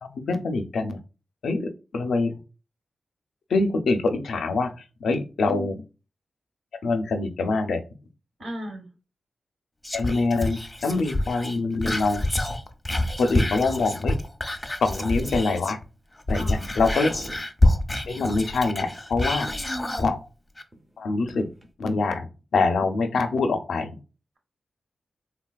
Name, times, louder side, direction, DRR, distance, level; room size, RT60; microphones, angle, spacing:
voice 1, 0.0-1.0 1.4-2.4 3.5-5.8 6.8-7.8 9.9-12.2 13.2-14.1 14.8-15.8 16.3-17.1 18.1-19.5 20.0-20.2 21.0-21.5 21.8-22.3 22.5-23.9, left 3 dB, 90° left, 8 dB, 0.4 m, -24 dB
voice 2, 5.4-5.8 8.4-8.9 16.3-16.9 19.3-20.0, equal, 70° right, 3 dB, 0.9 m, -36 dB
Whispering, 9.8-15.8 16.2-20.1 20.6-20.7, left 1 dB, 15° left, 0.4 m, -27 dB
sound 1, 14.8-14.9 15.2-15.7 16.5-16.6 17.0-17.5 18.7-19.6 20.0-20.1 20.7-21.7, right 1 dB, 25° right, 0.7 m, -44 dB
3.6 x 2.3 x 2.3 m, 0.32 s
wide cardioid pair, 100°, 0 cm